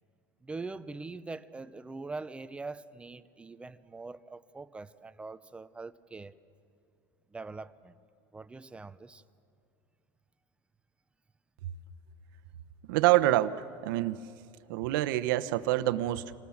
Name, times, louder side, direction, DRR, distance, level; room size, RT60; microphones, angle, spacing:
voice 1, 0.4-6.4 7.3-7.9 8.3-9.2, right 3 dB, 10° right, 13 dB, 0.6 m, -43 dB
voice 2, 12.8-14.2 14.7-16.3, right 15 dB, 75° right, 12 dB, 1.0 m, -27 dB
26.5 x 19.5 x 7.2 m, 2.7 s
supercardioid pair, 140°, 11 cm